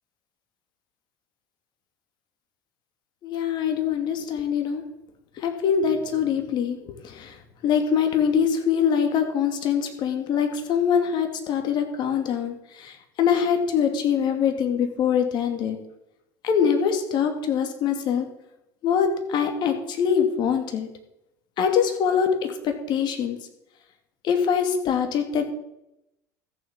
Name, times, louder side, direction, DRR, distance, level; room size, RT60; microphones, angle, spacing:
voice 1, 3.2-4.8 5.4-6.8 7.2-7.3 7.6-12.9 13.2-15.8 16.4-18.3 18.8-20.9 21.6-23.4 24.2-25.5, left 7 dB, 50° left, 5 dB, 2.7 m, -23 dB
14.0 x 7.3 x 7.7 m, 0.86 s
hypercardioid pair, 70°, 10 cm